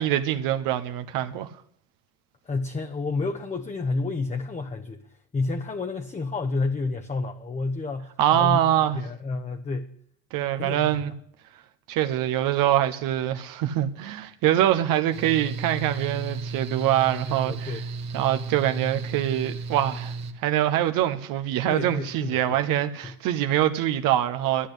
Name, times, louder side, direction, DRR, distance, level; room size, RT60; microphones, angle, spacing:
voice 1, 0.0-1.5 8.2-9.0 10.3-11.1 11.9-17.8 18.1-24.7, right 12 dB, 70° right, 1.0 m, -24 dB
voice 2, 2.4-5.0 5.3-9.9 10.6-11.0 17.2-17.8 21.7-22.6 23.0-23.2, left 3 dB, 20° left, 0.9 m, -30 dB
Mechanical fan, 15.1-20.3, right 4 dB, 50° right, 1.4 m, -34 dB
11.0 x 10.0 x 8.1 m
supercardioid pair, 90°, 35 cm